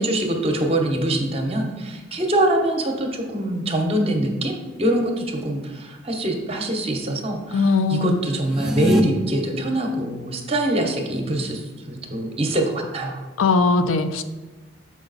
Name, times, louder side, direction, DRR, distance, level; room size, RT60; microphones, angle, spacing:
voice 1, 0.0-13.2, right 1 dB, 30° right, 3 dB, 0.9 m, -24 dB
voice 2, 7.5-8.2 13.4-14.2, left 4 dB, 80° left, 10 dB, 0.5 m, -19 dB
sound 1, 8.4-9.0, equal, ahead, 0.5 m, -22 dB
6.9 x 4.7 x 4.0 m, 1.2 s
head